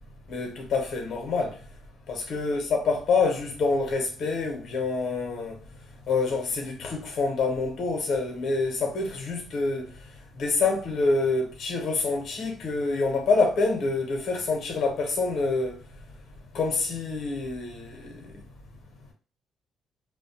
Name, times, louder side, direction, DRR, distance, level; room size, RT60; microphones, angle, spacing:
voice 1, 0.3-1.6 2.1-5.6 6.1-9.9 10.3-15.8 16.5-18.4, left 3 dB, 65° left, 0.8 m, -27 dB
2.2 x 2.1 x 2.8 m
cardioid pair, 90°, 0 cm